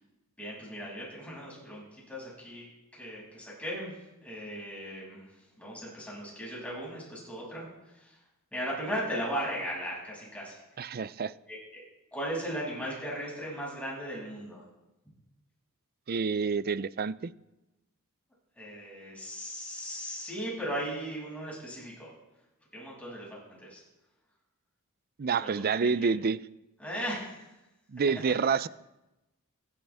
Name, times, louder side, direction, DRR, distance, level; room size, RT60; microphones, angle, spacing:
voice 1, 0.4-2.7 2.9-3.9 4.2-5.2 5.6-7.6 7.9-8.1 8.5-10.6 11.5-11.8 12.1-14.6 18.6-22.1 22.7-23.8 25.4-25.9 26.8-27.5, equal, 5° left, 6.7 m, -37 dB
voice 2, 10.8-11.3 16.1-17.3 25.2-26.4 27.9-28.7, right 5 dB, 45° right, 0.5 m, -28 dB
28.0 x 11.5 x 3.6 m
head